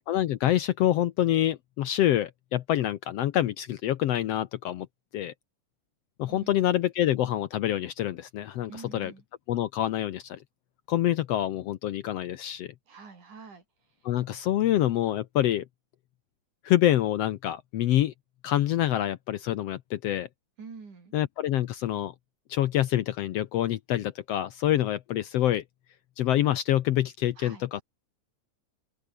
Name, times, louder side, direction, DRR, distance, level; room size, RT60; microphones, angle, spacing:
voice 1, 0.1-4.9 5.1-5.3 6.2-9.1 9.5-10.4 10.9-12.7 14.0-15.7 16.6-18.1 18.4-20.3 21.1-22.1 22.5-25.6 26.2-27.8, left 12 dB, 70° left, 1.6 m, -26 dB
voice 2, 6.3-6.7 8.7-9.2 12.9-13.6 20.6-21.1 27.4-27.7, right 5 dB, 80° right, 6.5 m, -46 dB
open air
omnidirectional pair, 3.5 m